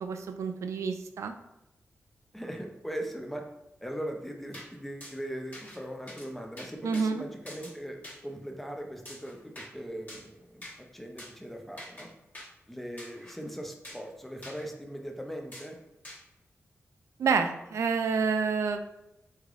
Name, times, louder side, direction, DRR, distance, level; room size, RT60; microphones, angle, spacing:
voice 1, 0.0-1.3 6.8-7.2 17.2-18.8, right 5 dB, 85° right, 7 dB, 0.3 m, -28 dB
voice 2, 2.3-3.4 3.8-10.7 10.9-12.1 12.7-15.8, equal, 5° left, 3 dB, 0.5 m, -39 dB
sound 1, 4.5-4.7 5.0-5.1 5.5-5.8 6.1-6.3 6.6-7.1 7.5-7.7 8.0-8.2 9.1-9.7 10.1-10.3 10.6-10.8 11.2-11.3 11.8-12.1 12.3-12.5 13.0-13.3 13.8-14.1 14.4-14.6 15.5-15.7 16.0-16.2, left 1 dB, 40° left, 1.3 m, -45 dB
3.6 x 3.2 x 2.4 m, 0.90 s
wide cardioid pair, 110°, 5 cm